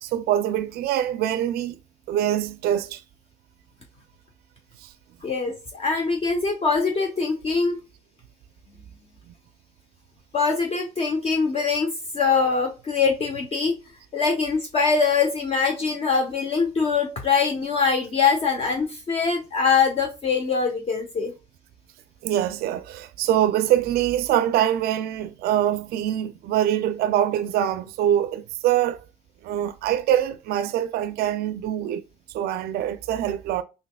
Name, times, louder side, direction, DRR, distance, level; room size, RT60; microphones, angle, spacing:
voice 1, 0.0-1.8 2.1-3.0 4.8-4.9 22.2-29.0 29.4-32.0 32.3-33.6, right 11 dB, 65° right, 0.4 m, -24 dB
voice 2, 5.2-7.8 10.3-13.8 14.1-21.3, left 5 dB, 35° left, 0.7 m, -23 dB
4.0 x 3.0 x 2.2 m
cardioid pair, 110°, 17 cm